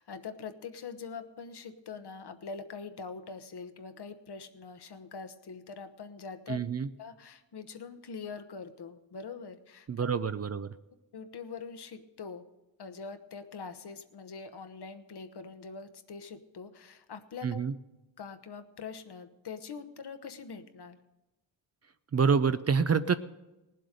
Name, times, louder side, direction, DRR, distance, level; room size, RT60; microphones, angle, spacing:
voice 1, 0.0-6.7 7.0-10.1 11.1-12.5 12.8-17.6 18.2-21.0, left 5 dB, 60° left, 9 dB, 1.0 m, -43 dB
voice 2, 6.5-6.9 9.9-10.7 17.4-17.7 22.1-23.1, right 6 dB, 35° right, 13 dB, 0.5 m, -27 dB
18.5 x 7.8 x 5.1 m, 1.0 s
cardioid pair, 70°, 45 cm